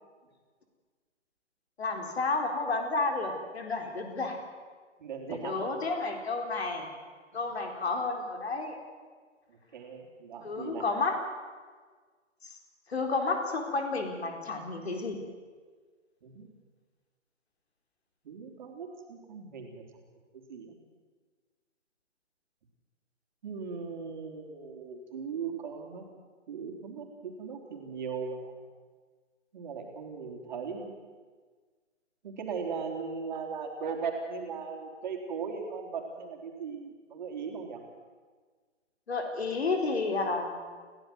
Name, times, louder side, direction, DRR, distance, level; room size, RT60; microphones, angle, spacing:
voice 1, 1.8-4.4 5.3-6.9 7.3-8.8 10.4-11.1 12.9-15.2 39.1-40.6, left 3 dB, 55° left, 4 dB, 4.3 m, -31 dB
voice 2, 5.0-5.7 7.5-7.6 9.5-10.9 16.2-16.5 18.2-19.8 20.3-20.7 23.4-26.0 26.5-28.6 29.5-30.9 32.2-37.8, right 5 dB, 35° right, 2 dB, 3.8 m, -38 dB
27.5 x 15.5 x 7.9 m, 1.5 s
figure-of-eight pair, 145°, 38 cm